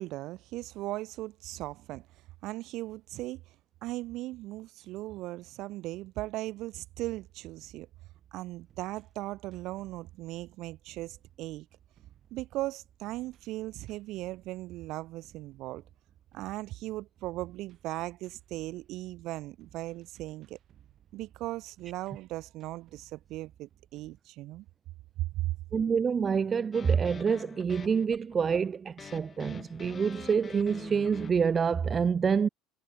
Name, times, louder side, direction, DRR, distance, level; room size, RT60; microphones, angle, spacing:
voice 1, 0.0-2.1 2.4-3.4 3.8-7.9 8.3-11.7 12.3-15.8 16.3-20.6 21.1-24.7 25.2-25.6, right 17 dB, 60° right, 1.7 m, -38 dB
sound 1, 6.8-24.2, right 11 dB, 40° right, 5.7 m, -61 dB
voice 2, 25.7-32.5, right 6 dB, 25° right, 0.5 m, -27 dB
sound 2, 26.7-31.6, left 6 dB, 25° left, 0.7 m, -46 dB
cardioid pair, 135°, 0 cm